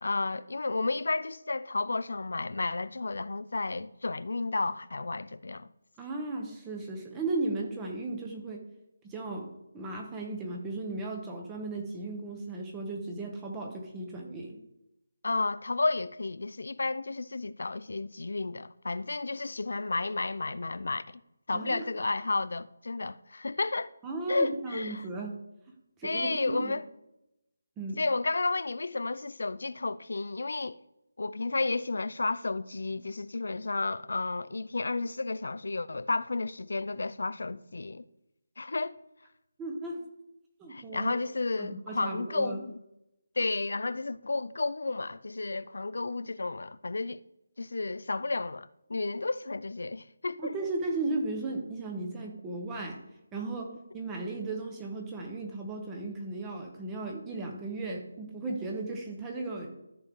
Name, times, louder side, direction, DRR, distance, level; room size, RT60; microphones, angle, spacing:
voice 1, 0.0-5.7 15.2-21.2 21.5-23.9 24.3-25.1 26.0-26.9 28.0-30.8 31.2-38.1 38.6-39.0 40.7-42.8 43.4-47.2 47.6-50.5, left 3 dB, 75° left, 0.4 m, -32 dB
voice 2, 6.0-8.7 9.1-9.5 9.7-14.6 21.5-21.8 24.0-25.4 26.0-26.7 27.8-28.0 39.6-40.0 40.6-41.1 41.6-42.6 50.4-53.0 53.3-59.8, right 2 dB, 10° right, 1.0 m, -35 dB
13.5 x 4.6 x 3.7 m
figure-of-eight pair, 165°, 0 cm